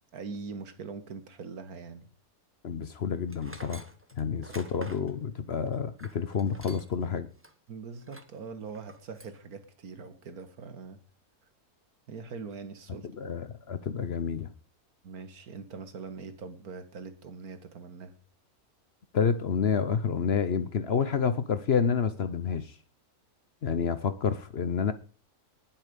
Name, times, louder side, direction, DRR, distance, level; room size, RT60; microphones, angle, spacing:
voice 1, 0.1-2.0 4.5-4.6 7.7-11.0 12.1-13.1 15.0-18.2, right 5 dB, 80° right, 1.9 m, -42 dB
voice 2, 2.6-3.9 4.2-7.3 13.2-14.5 19.1-22.7 23.6-24.9, left 6 dB, 50° left, 1.0 m, -29 dB
Tools, 3.3-7.0 7.4-7.5 8.0-8.4 8.7-9.4, right 1 dB, 10° right, 0.9 m, -48 dB
19.5 x 7.4 x 5.2 m
omnidirectional pair, 1.6 m